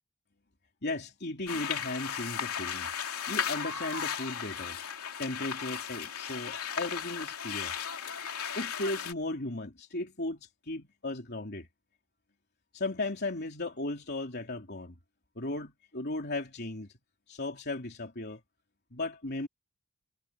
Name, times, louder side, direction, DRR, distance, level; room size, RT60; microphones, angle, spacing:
voice 1, 0.8-2.9 3.3-4.8 5.2-7.7 8.5-11.7 12.7-15.0 15.4-16.9 17.3-18.4 18.9-19.5, left 2 dB, 45° left, 3.2 m, -36 dB
sound 1, 1.5-9.1, left 8 dB, 80° left, 2.9 m, -36 dB
head